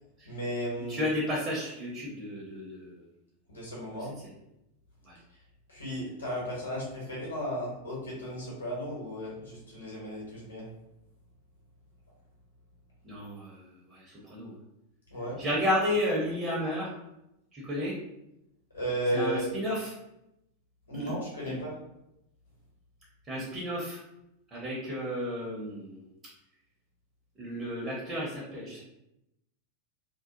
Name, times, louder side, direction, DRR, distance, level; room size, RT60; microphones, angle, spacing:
voice 1, 0.2-1.1 3.5-4.1 5.7-10.7 15.1-15.4 18.7-19.4 20.9-21.7, equal, 75° left, -5 dB, 1.2 m, -34 dB
voice 2, 0.9-3.1 4.0-4.3 5.0-5.2 13.0-14.6 15.4-17.0 17.5-18.0 19.1-20.0 20.9-21.2 21.4-21.6 23.2-24.0 24.5-26.1 27.4-28.8, left 1 dB, 20° right, -6 dB, 0.7 m, -33 dB
2.6 x 2.2 x 2.6 m, 0.85 s
figure-of-eight pair, 90°, 0 cm